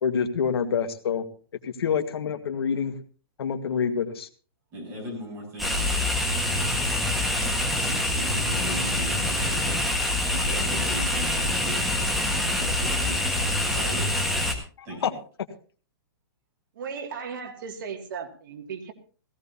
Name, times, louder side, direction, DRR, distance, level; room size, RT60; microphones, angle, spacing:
voice 1, 0.0-1.3 1.6-3.0 3.4-4.3 15.0-15.1, left 7 dB, 85° left, 6 dB, 1.7 m, -26 dB
voice 2, 4.7-6.0 7.4-9.9 10.3-12.2 12.4-13.3 13.6-14.3 14.8-15.1, right 1 dB, 20° right, -1 dB, 8.0 m, -38 dB
sound 1, 5.6-14.5, left 1 dB, ahead, 1.5 m, -25 dB
voice 3, 16.7-18.9, right 6 dB, 60° right, 3 dB, 2.3 m, -36 dB
17.5 x 16.0 x 2.8 m, 0.39 s
hypercardioid pair, 165°, 13 cm